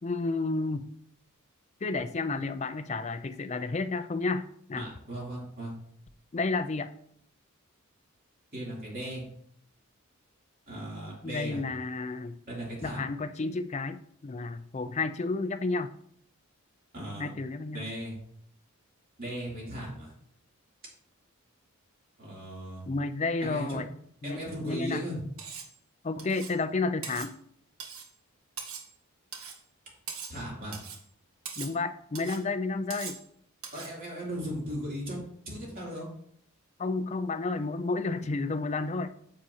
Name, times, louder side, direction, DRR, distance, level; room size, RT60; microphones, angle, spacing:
voice 1, 0.0-0.9 1.8-4.9 6.3-6.9 11.2-12.4 12.8-15.9 17.2-17.9 22.9-23.9 24.2-25.0 26.0-27.3 31.6-33.2 36.8-39.1, left 3 dB, 30° left, 10 dB, 0.4 m, -31 dB
voice 2, 4.8-5.7 8.5-9.2 10.7-11.6 12.5-13.0 16.9-17.3 17.7-18.1 19.2-20.1 22.2-22.8 23.4-23.8 24.2-25.2 30.3-30.8 33.7-35.2 35.4-36.1, equal, 40° right, -5 dB, 3.0 m, -37 dB
Cutlery silverware, 25.4-25.7 26.2-26.6 27.0-27.3 27.8-28.1 28.6-28.9 29.3-29.6 30.1-30.4 30.7-31.0 31.5-31.8 32.2-32.4 32.9-33.2 33.6-33.9, right 6 dB, 75° right, 1.2 m, -41 dB
9.6 x 7.6 x 2.8 m, 0.66 s
head